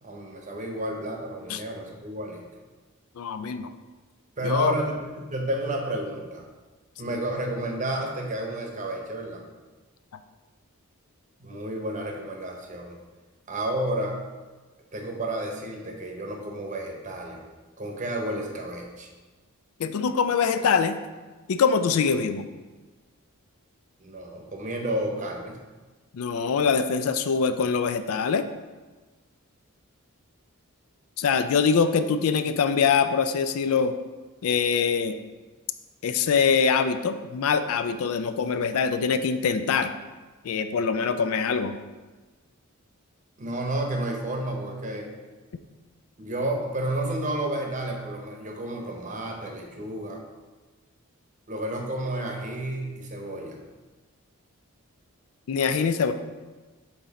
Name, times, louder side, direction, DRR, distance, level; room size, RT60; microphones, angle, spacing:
voice 1, 0.0-2.4 4.4-6.5 7.0-9.4 11.4-13.0 13.5-14.1 14.9-17.4 17.8-19.1 24.0-25.6 43.4-45.1 46.2-50.2 51.5-53.6, right 1 dB, 35° right, 1 dB, 0.8 m, -31 dB
voice 2, 3.2-3.7 4.4-4.7 19.8-21.0 21.5-22.5 26.1-28.5 31.2-33.9 34.4-35.2 36.0-39.9 40.4-41.8 55.5-56.1, left 6 dB, 70° left, 10 dB, 0.4 m, -23 dB
6.0 x 3.8 x 4.1 m, 1.3 s
head